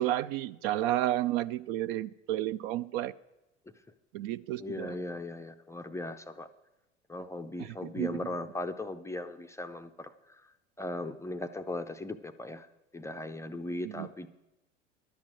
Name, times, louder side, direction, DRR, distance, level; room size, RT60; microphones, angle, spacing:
voice 1, 0.0-3.1 4.1-5.0 7.6-8.2 13.9-14.1, right 13 dB, 50° right, 16 dB, 0.4 m, -31 dB
voice 2, 4.6-6.5 7.1-10.1 10.8-12.7 12.9-14.3, left 2 dB, 10° left, 8 dB, 0.5 m, -38 dB
11.5 x 7.2 x 7.6 m, 0.99 s
hypercardioid pair, 80°, 37 cm